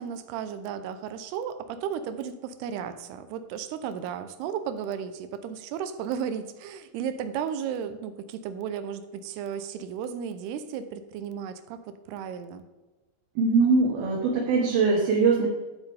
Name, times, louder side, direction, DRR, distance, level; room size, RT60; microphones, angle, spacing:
voice 1, 0.0-12.6, right 8 dB, 90° right, 11 dB, 2.8 m, -34 dB
voice 2, 13.4-15.5, right 4 dB, 75° right, -2 dB, 3.0 m, -22 dB
11.5 x 8.1 x 3.4 m, 1.2 s
omnidirectional pair, 4.6 m